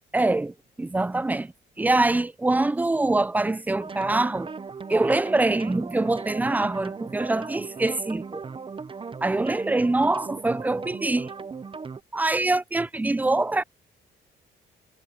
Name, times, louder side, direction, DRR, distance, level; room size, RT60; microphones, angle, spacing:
voice 1, 0.1-1.5 1.8-4.5 4.9-8.4 9.2-11.3 12.1-13.6, right 2 dB, 10° right, 0.4 m, -24 dB
sound 1, 3.8-12.0, right 5 dB, 25° right, 0.7 m, -37 dB
cardioid pair, 90°, 20 cm